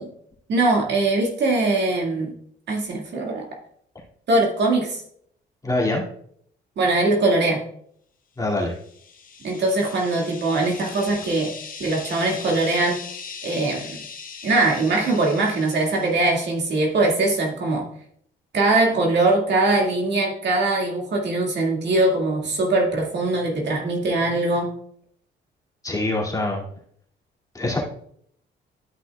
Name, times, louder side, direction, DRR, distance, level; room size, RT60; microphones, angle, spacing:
voice 1, 0.5-2.3 2.7-3.5 4.3-5.0 6.8-7.6 9.4-11.5 11.8-13.0 13.4-14.0 14.4-17.9 18.5-24.7, right 2 dB, 60° right, 0 dB, 2.1 m, -21 dB
voice 2, 5.6-6.0 8.4-8.7 25.8-26.7 27.5-27.8, left 2 dB, 20° left, -3 dB, 2.4 m, -24 dB
sound 1, 8.7-16.5, left 5 dB, 45° left, 1.1 m, -39 dB
12.5 x 5.7 x 2.3 m, 0.66 s
cardioid pair, 90°, 20 cm